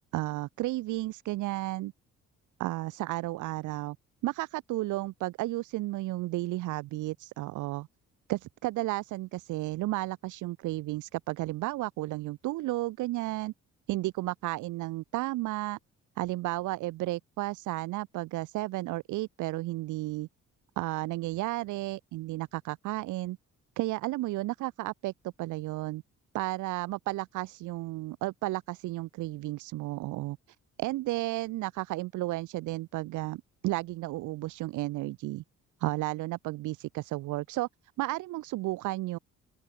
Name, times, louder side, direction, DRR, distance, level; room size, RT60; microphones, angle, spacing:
voice 1, 0.1-1.9 2.6-4.0 4.2-7.9 8.3-13.5 13.9-15.8 16.2-20.3 20.8-23.4 23.8-26.0 26.3-30.4 30.8-35.4 35.8-37.7 38.0-39.2, right 18 dB, 80° right, 0.5 m, -33 dB
open air
cardioid pair, 90°, 30 cm